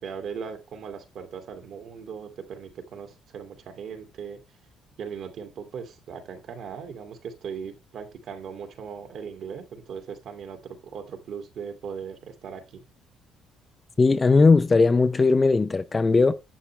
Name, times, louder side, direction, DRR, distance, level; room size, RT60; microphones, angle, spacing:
voice 1, 0.0-4.4 5.0-12.8, right 6 dB, 50° right, 2.4 m, -38 dB
voice 2, 14.0-16.3, left 3 dB, 15° left, 0.5 m, -18 dB
11.5 x 8.6 x 3.2 m
cardioid pair, 170°, 0 cm